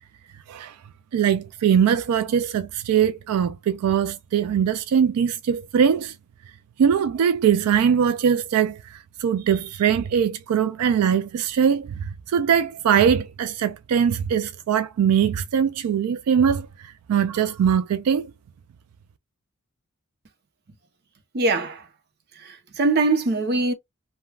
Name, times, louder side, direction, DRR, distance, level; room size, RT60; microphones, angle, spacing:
voice 1, 1.1-6.1 6.8-18.3, right 8 dB, 85° right, 0.3 m, -21 dB
voice 2, 21.3-21.9 22.3-23.7, right 3 dB, 50° right, 0.6 m, -22 dB
3.2 x 2.2 x 2.3 m
head